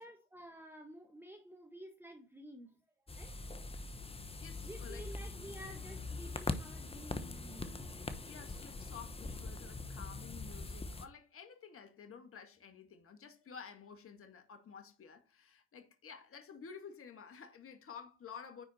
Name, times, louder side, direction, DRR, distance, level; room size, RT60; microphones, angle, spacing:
voice 1, 0.0-2.8 3.2-3.4 4.6-7.9, right 1 dB, 5° right, 1.4 m, -52 dB
sound 1, 3.1-11.1, left 3 dB, 15° left, 1.0 m, -43 dB
voice 2, 4.4-5.1 8.3-18.6, left 6 dB, 35° left, 1.8 m, -52 dB
9.8 x 4.5 x 4.2 m
supercardioid pair, 85°, 37 cm